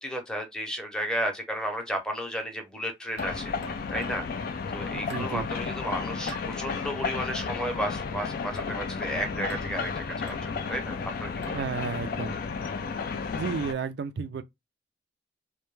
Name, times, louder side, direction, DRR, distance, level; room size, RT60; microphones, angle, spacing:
voice 1, 0.0-3.5 3.9-4.3 4.7-11.6, equal, 5° left, 0.6 m, -33 dB
sound 1, 3.2-13.7, left 5 dB, 50° left, 0.3 m, -33 dB
sound 2, 3.2-4.3 5.1-5.4 6.3-6.5 7.4-7.7 8.6-8.8 9.5-9.8 10.3-10.5 11.4-11.7, right 3 dB, 85° right, 0.9 m, -45 dB
voice 2, 4.9-5.5 11.5-12.4 13.3-14.4, right 5 dB, 65° right, 0.4 m, -32 dB
2.1 x 2.1 x 3.0 m
head